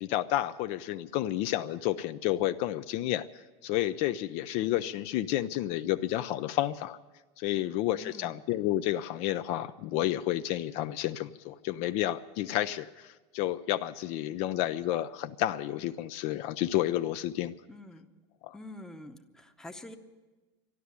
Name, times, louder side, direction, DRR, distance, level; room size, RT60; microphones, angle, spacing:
voice 1, 0.0-7.0 7.4-17.5 18.4-18.5, left 14 dB, 50° left, 11 dB, 0.4 m, -31 dB
voice 2, 8.0-8.4 17.7-18.1 18.5-20.0, left 1 dB, 5° left, 5 dB, 0.8 m, -46 dB
12.5 x 12.0 x 9.6 m, 1.2 s
supercardioid pair, 155°, 14 cm